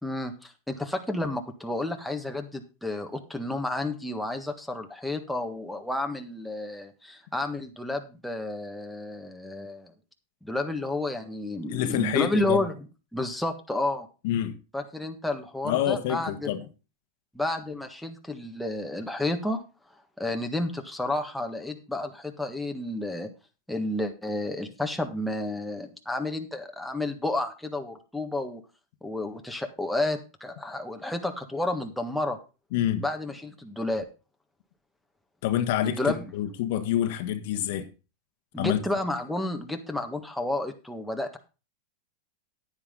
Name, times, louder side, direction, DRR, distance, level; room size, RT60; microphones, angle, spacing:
voice 1, 0.0-9.9 10.4-12.7 13.1-14.1 14.7-16.5 17.3-19.6 20.2-23.3 23.7-28.6 29.0-32.4 33.0-34.0 35.8-36.3 38.5-41.4, left 2 dB, ahead, 1.5 m, -31 dB
voice 2, 11.7-12.6 14.2-14.6 15.6-16.6 32.7-33.0 35.4-37.9 38.6-38.8, left 11 dB, 65° left, 1.3 m, -27 dB
9.8 x 9.7 x 3.8 m
hypercardioid pair, 120°, 0 cm